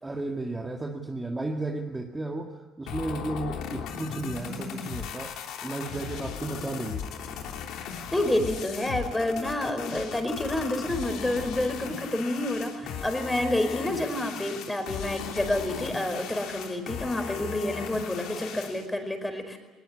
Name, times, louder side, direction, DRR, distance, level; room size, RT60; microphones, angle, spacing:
voice 1, 0.0-5.3 5.6-7.1, right 2 dB, 15° right, 2 dB, 2.1 m, -34 dB
sound 1, 2.9-18.9, left 7 dB, 75° left, 3.2 m, -37 dB
voice 2, 8.1-19.6, left 1 dB, 10° left, 7 dB, 4.9 m, -29 dB
21.0 x 19.0 x 9.9 m, 1.2 s
supercardioid pair, 85°, 0 cm